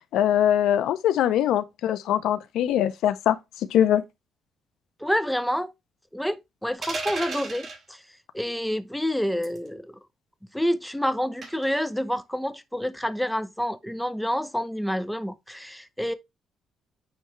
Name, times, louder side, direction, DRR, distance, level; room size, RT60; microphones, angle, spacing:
voice 1, 0.1-3.4 3.7-4.0, left 10 dB, 85° left, 0.6 m, -22 dB
voice 2, 5.0-5.7 6.1-8.0 8.3-10.0 10.5-16.1, equal, ahead, 0.7 m, -28 dB
sound 1, 6.8-7.8 9.4-9.7 11.4-11.7, right 3 dB, 45° right, 3.8 m, -33 dB
9.4 x 3.2 x 3.1 m
cardioid pair, 90°, 0 cm